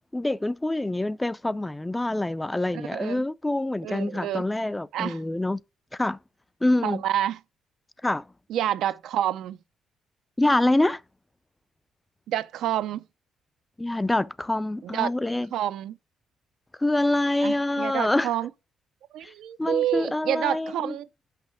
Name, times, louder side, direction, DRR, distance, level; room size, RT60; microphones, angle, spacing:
voice 1, 0.1-5.6 5.9-6.2 6.6-7.0 8.0-8.2 10.4-11.0 13.8-15.5 16.8-18.3 19.2-19.3 19.6-20.9, left 1 dB, 10° left, 0.4 m, -25 dB
voice 2, 2.7-3.2 3.8-4.4 4.9-5.2 6.8-7.4 8.5-9.6 12.3-13.0 14.8-15.1 15.5-16.0 17.4-18.5 19.1-21.1, right 11 dB, 80° right, 0.5 m, -28 dB
6.2 x 5.8 x 4.8 m
cardioid pair, 90°, 0 cm